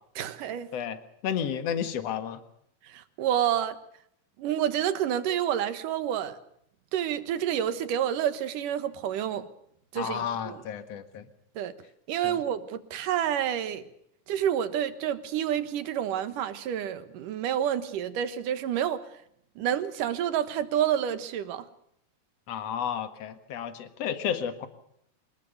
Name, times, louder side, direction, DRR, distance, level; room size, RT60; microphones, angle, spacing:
voice 1, 0.2-0.7 2.9-3.8 4.4-6.4 6.9-9.5 9.9-10.6 11.6-11.7 12.1-13.8 14.3-19.1 19.6-21.7, right 10 dB, 65° right, 2.7 m, -29 dB
voice 2, 1.2-2.4 10.0-11.3 12.2-12.4 22.5-24.7, left 8 dB, 50° left, 2.4 m, -32 dB
24.0 x 20.5 x 6.6 m
omnidirectional pair, 4.4 m